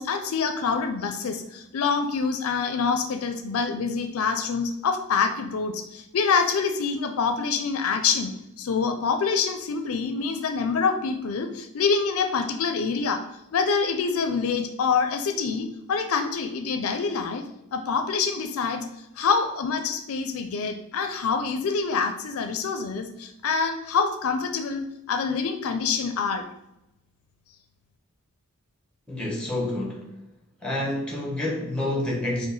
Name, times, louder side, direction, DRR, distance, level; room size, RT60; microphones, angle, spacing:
voice 1, 0.0-13.2 13.5-17.4 17.7-18.8 19.2-26.4, left 5 dB, 75° left, 7 dB, 0.4 m, -26 dB
voice 2, 29.1-30.1 30.6-32.5, left 1 dB, 5° left, -2 dB, 0.9 m, -28 dB
4.6 x 2.1 x 4.0 m, 0.85 s
head